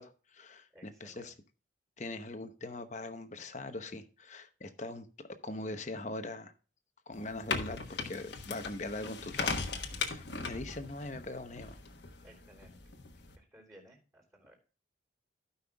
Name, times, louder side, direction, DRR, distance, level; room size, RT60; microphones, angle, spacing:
voice 1, 0.0-1.3 2.0-5.1 5.4-6.5 7.1-11.8, left 2 dB, 40° left, 0.9 m, -42 dB
voice 2, 0.7-1.3 4.7-4.8 10.2-10.4 12.2-12.9 13.4-14.5, equal, 20° right, 3.3 m, -59 dB
sound 1, 7.1-13.4, left 4 dB, 65° left, 1.2 m, -39 dB
16.5 x 5.7 x 2.3 m
head